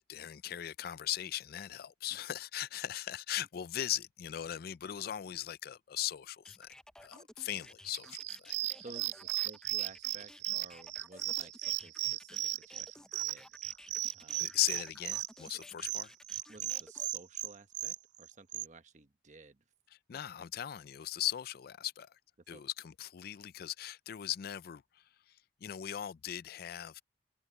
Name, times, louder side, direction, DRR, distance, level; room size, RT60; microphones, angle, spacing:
voice 1, 0.0-6.7 7.0-8.5 14.4-16.1 20.1-22.1 22.5-24.8 25.6-27.0, left 12 dB, 60° left, 0.4 m, -38 dB
sound 1, 6.4-17.1, left 1 dB, 5° left, 0.5 m, -55 dB
sound 2, 7.9-18.7, right 17 dB, 80° right, 0.4 m, -36 dB
voice 2, 8.8-13.5 14.1-14.5 16.5-19.6 20.1-20.2 22.5-22.6, right 3 dB, 45° right, 1.1 m, -54 dB
head